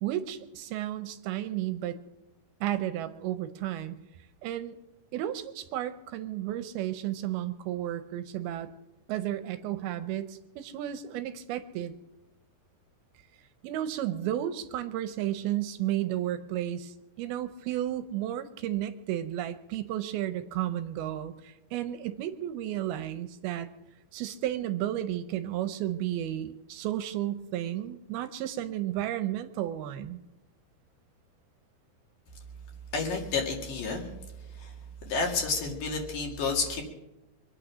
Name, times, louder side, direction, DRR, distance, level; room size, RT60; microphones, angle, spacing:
voice 1, 0.0-2.0 2.6-3.9 4.4-4.8 5.1-8.7 9.1-11.9 13.6-23.7 24.1-30.2, right 12 dB, 80° right, 10 dB, 2.5 m, -33 dB
voice 2, 32.9-34.1 34.6-34.7 35.1-36.8, left 4 dB, 60° left, 1 dB, 3.6 m, -30 dB
24.5 x 8.9 x 6.2 m, 0.97 s
omnidirectional pair, 4.6 m